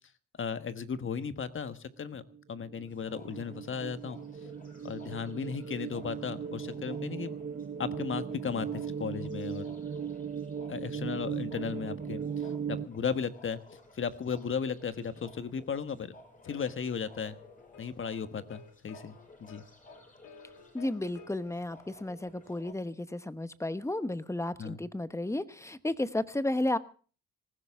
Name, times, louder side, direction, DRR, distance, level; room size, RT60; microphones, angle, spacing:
voice 1, 0.4-2.2 2.5-4.2 4.8-7.3 7.8-9.8 10.7-13.6 14.0-16.1 16.4-17.4 17.8-19.6 24.6-24.8, left 6 dB, 40° left, 11 dB, 1.4 m, -35 dB
sound 1, 2.3-12.9, right 7 dB, 30° right, 0.9 m, -38 dB
sound 2, 2.9-22.7, left 1 dB, 25° left, 5.9 m, -56 dB
sound 3, 16.4-21.4, left 6 dB, 80° left, 2.0 m, -54 dB
voice 2, 20.7-26.8, left 1 dB, 10° left, 13 dB, 1.0 m, -33 dB
19.0 x 15.5 x 3.6 m, 0.39 s
cardioid pair, 90°, 30 cm